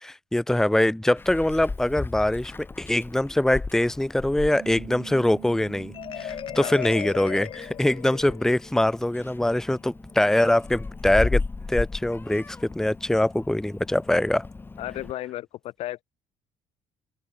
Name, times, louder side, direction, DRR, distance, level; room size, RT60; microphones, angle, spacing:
voice 1, 0.0-2.5 2.8-11.4 11.7-14.5, left 1 dB, 5° left, 1.1 m, -23 dB
Meow, 1.2-15.1, left 3 dB, 20° left, 2.8 m, -36 dB
Bass guitar, 4.5-8.9 9.2-10.8, right 16 dB, 80° right, 5.6 m, -48 dB
Marimba xylophone, 5.9-8.7, left 10 dB, 55° left, 3.8 m, -36 dB
voice 2, 14.8-16.0, left 14 dB, 75° left, 3.2 m, -34 dB
cardioid pair, 105°, 11 cm